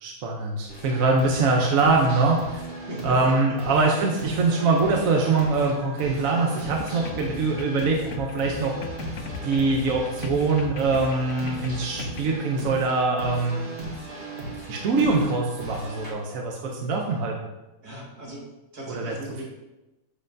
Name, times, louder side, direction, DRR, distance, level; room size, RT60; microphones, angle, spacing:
voice 1, 0.0-2.6 3.0-9.1 9.4-13.6 14.7-17.4 18.9-19.1, right 3 dB, 65° right, 0 dB, 1.1 m, -23 dB
sound 1, 0.7-16.1, right 1 dB, 40° right, 1.5 m, -37 dB
voice 2, 2.9-3.3 17.8-19.4, right 1 dB, 80° right, -5 dB, 2.5 m, -38 dB
sound 2, 6.7-12.4, left 5 dB, 65° left, 0.8 m, -38 dB
7.5 x 6.1 x 2.6 m, 1.0 s
omnidirectional pair, 1.6 m